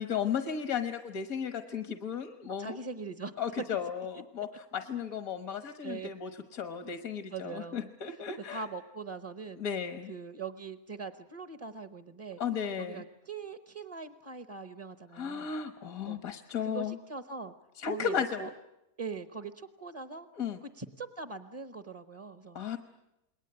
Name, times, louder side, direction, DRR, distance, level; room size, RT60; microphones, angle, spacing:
voice 1, 0.0-2.8 3.4-8.6 9.6-10.1 12.4-13.0 15.1-17.0 17.8-18.5 20.4-20.6 22.5-22.8, left 7 dB, 70° left, 8 dB, 1.7 m, -35 dB
voice 2, 2.6-3.3 5.8-6.1 7.3-7.9 8.5-9.6 10.1-12.4 12.8-15.5 16.1-16.2 16.6-17.5 17.8-18.5 19.0-20.3 20.6-22.6, right 4 dB, 25° right, 10 dB, 1.0 m, -41 dB
28.5 x 21.0 x 8.9 m, 0.90 s
omnidirectional pair, 1.5 m